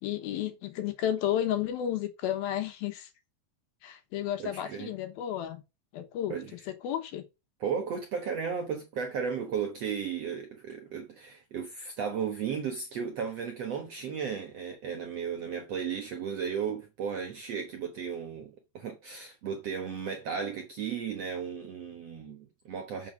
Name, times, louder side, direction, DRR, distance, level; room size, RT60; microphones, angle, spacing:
voice 1, 0.0-3.1 3.8-5.6 5.9-7.2, left 11 dB, 70° left, 2.7 m, -32 dB
voice 2, 4.4-4.9 6.3-6.5 7.6-23.1, right 7 dB, 75° right, 1.4 m, -35 dB
6.8 x 6.1 x 6.4 m
omnidirectional pair, 4.7 m